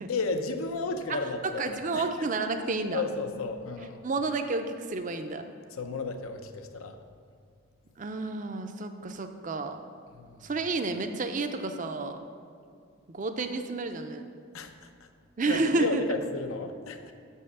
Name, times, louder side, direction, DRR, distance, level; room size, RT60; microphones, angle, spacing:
voice 1, 0.1-2.7 2.9-4.0 5.7-7.0 10.1-10.5 14.5-14.7 15.5-17.1, left 3 dB, 80° left, 7 dB, 0.6 m, -33 dB
voice 2, 1.1-3.0 4.0-5.5 8.0-9.8 10.4-12.2 13.1-14.2 15.4-16.0, right 3 dB, 35° right, 7 dB, 0.5 m, -30 dB
6.6 x 5.5 x 6.6 m, 2.2 s
head